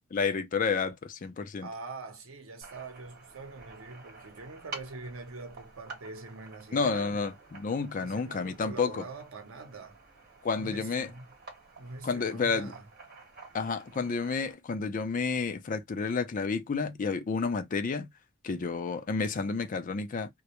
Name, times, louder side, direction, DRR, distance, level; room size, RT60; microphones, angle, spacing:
voice 1, 0.1-1.7 6.7-9.0 10.4-11.1 12.0-12.7 13.5-18.1 18.4-20.3, left 4 dB, 40° left, 0.4 m, -30 dB
voice 2, 1.6-7.3 8.0-10.0 10.5-11.3 11.8-12.8, right 3 dB, 85° right, 0.7 m, -44 dB
sound 1, 2.6-14.5, right 3 dB, 45° right, 1.2 m, -50 dB
2.2 x 2.0 x 2.8 m
head